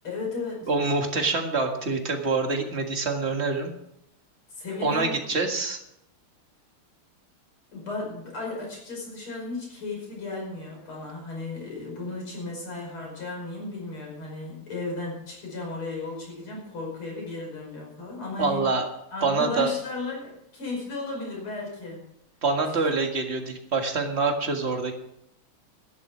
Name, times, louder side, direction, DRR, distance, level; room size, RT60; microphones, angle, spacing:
voice 1, 0.0-0.7 4.5-5.2 7.7-18.6 19.1-22.0 22.7-22.8, left 3 dB, 75° left, -1 dB, 6.3 m, -35 dB
voice 2, 0.7-3.7 4.8-5.8 18.4-18.9 19.2-19.7 22.4-24.9, right 3 dB, 30° right, 3 dB, 1.9 m, -25 dB
12.5 x 10.5 x 6.1 m, 0.79 s
omnidirectional pair, 2.4 m